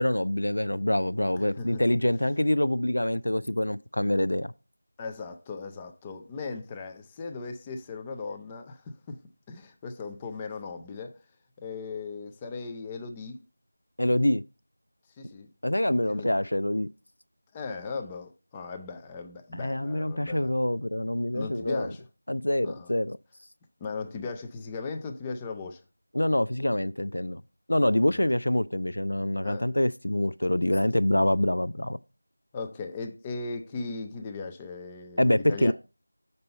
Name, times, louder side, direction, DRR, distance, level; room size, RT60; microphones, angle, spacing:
voice 1, 0.0-4.5 14.0-14.4 15.6-16.9 19.5-21.9 22.3-23.2 26.1-27.4 27.7-32.0 35.2-35.7, left 1 dB, 80° left, 0.4 m, -25 dB
voice 2, 1.3-1.8 5.0-9.2 9.5-11.2 11.6-13.4 15.2-15.5 16.1-16.3 17.5-20.5 21.3-22.0 22.6-22.9 23.8-25.8 28.1-28.3 29.4-29.7 32.5-35.7, left 4 dB, 10° left, 0.4 m, -38 dB
6.7 x 5.4 x 4.0 m
figure-of-eight pair, 175°, 0 cm